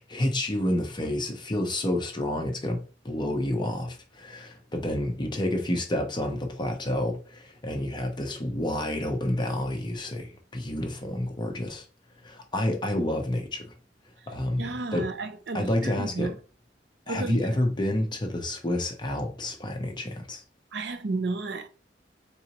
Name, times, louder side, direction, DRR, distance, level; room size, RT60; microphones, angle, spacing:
voice 1, 0.0-11.9 12.2-13.7 14.3-14.6 14.9-15.1 15.5-16.3 17.1-20.4, left 1 dB, 25° left, 0.7 m, -29 dB
voice 2, 14.6-16.4 17.1-17.4 20.7-21.7, right 3 dB, 70° right, 0.6 m, -32 dB
4.0 x 3.9 x 2.9 m
head